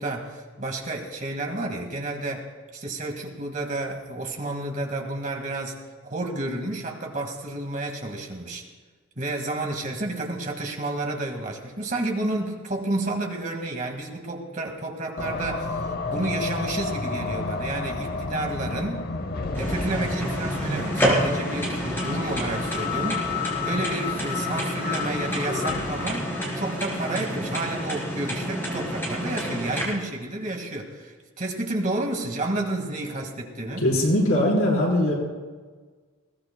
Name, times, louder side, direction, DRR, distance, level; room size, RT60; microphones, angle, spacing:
voice 1, 0.0-8.6 9.2-19.0 19.6-33.8, right 2 dB, 40° right, 2 dB, 1.8 m, -31 dB
sound 1, 15.2-27.2, left 4 dB, 45° left, 0.7 m, -31 dB
sound 2, 19.5-29.8, equal, 10° left, 3.7 m, -29 dB
voice 2, 33.8-35.1, left 1 dB, 85° left, -3 dB, 4.6 m, -21 dB
20.5 x 17.0 x 2.2 m, 1.4 s
head